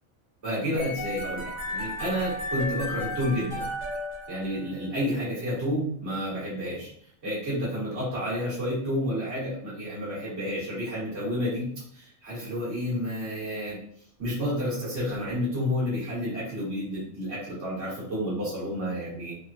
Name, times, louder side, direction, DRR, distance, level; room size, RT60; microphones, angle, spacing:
voice 1, 0.4-3.7 4.3-6.9 7.2-11.7 11.9-13.8 14.2-19.3, equal, 55° right, -9 dB, 1.8 m, -30 dB
sound 1, 0.8-4.9, left 1 dB, 30° right, 0.6 m, -34 dB
3.5 x 2.2 x 2.5 m, 0.65 s
omnidirectional pair, 1.4 m